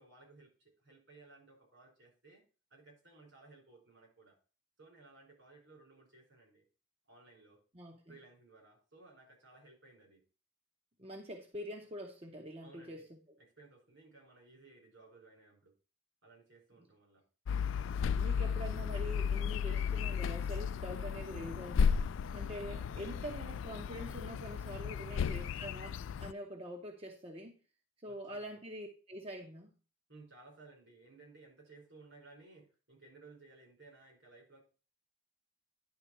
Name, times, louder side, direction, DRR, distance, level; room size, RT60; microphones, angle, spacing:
voice 1, 0.0-2.4 2.7-4.4 4.8-6.6 7.1-7.6 8.1-10.2 12.6-13.1 13.4-15.7 16.2-17.2 25.0-25.5 28.0-28.6 30.1-34.6, right 3 dB, 75° right, -1 dB, 5.0 m, -59 dB
voice 2, 7.7-8.2 11.0-13.0 18.0-22.0 22.3-27.5 28.0-29.7, equal, 30° right, 2 dB, 0.9 m, -45 dB
sound 1, 17.5-26.3, left 6 dB, 80° left, 0.3 m, -34 dB
10.5 x 3.7 x 5.9 m, 0.35 s
head